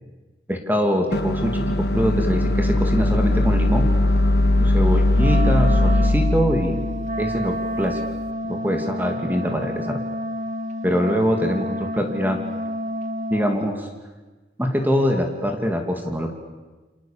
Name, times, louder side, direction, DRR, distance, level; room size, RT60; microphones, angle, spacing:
voice 1, 0.5-3.9 4.6-6.9 7.2-8.0 8.5-10.0 10.8-12.4 13.3-13.9 14.6-16.3, equal, 10° right, 3 dB, 2.4 m, -23 dB
sound 1, 1.1-8.2, left 1 dB, 60° left, 1.2 m, -20 dB
Wind instrument woodwind instrument, 5.1-13.6, equal, 40° right, 1.6 m, -29 dB
29.5 x 26.0 x 7.3 m, 1.2 s
head